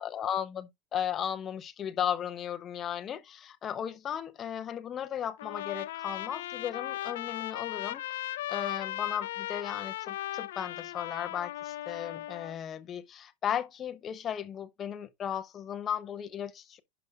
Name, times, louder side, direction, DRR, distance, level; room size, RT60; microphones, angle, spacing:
voice 1, 0.0-8.0 8.5-16.8, left 9 dB, 20° left, 0.6 m, -35 dB
Trumpet, 5.4-12.6, left 14 dB, 80° left, 0.3 m, -37 dB
11.0 x 5.0 x 2.3 m
supercardioid pair, 170°, 0 cm